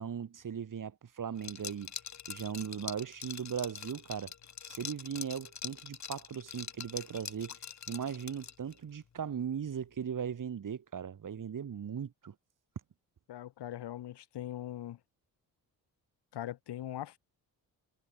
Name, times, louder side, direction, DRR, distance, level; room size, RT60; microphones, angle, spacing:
voice 1, 0.0-1.9 2.3-4.3 4.7-7.6 7.9-12.3, right 7 dB, 50° right, 3.0 m, -38 dB
Liquid, 1.4-8.8, left 8 dB, 45° left, 1.5 m, -44 dB
voice 2, 13.3-15.0 16.3-17.2, left 12 dB, 85° left, 4.9 m, -41 dB
cardioid pair, 85°, 40 cm